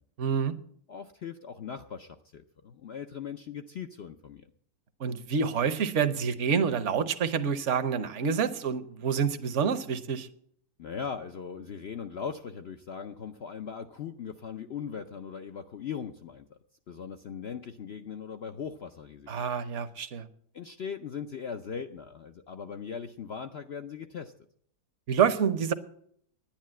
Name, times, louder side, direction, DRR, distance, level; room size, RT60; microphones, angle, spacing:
voice 1, 0.2-0.6 5.0-10.3 19.3-20.3 25.1-25.7, right 7 dB, 55° right, 1.0 m, -27 dB
voice 2, 0.9-4.5 10.8-16.6 16.9-19.3 20.5-24.3, left 7 dB, 65° left, 0.6 m, -39 dB
10.5 x 10.0 x 7.6 m
omnidirectional pair, 1.8 m